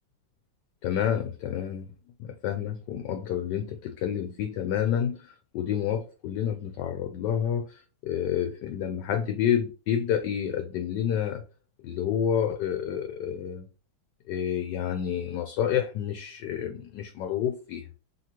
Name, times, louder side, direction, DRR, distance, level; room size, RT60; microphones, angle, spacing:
voice 1, 0.8-1.9 2.2-11.4 11.8-13.7 14.3-17.9, left 9 dB, 75° left, 1.1 m, -29 dB
5.2 x 2.8 x 2.9 m
omnidirectional pair, 2.1 m